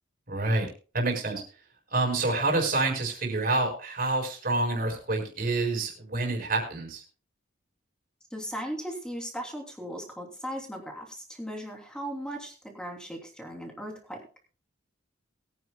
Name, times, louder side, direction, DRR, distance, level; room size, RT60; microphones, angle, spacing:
voice 1, 0.3-0.7 0.9-1.4 1.9-7.0, right 2 dB, 45° right, 1 dB, 4.7 m, -27 dB
voice 2, 8.3-14.2, equal, 5° left, 1 dB, 3.0 m, -37 dB
22.5 x 9.5 x 2.3 m, 0.36 s
head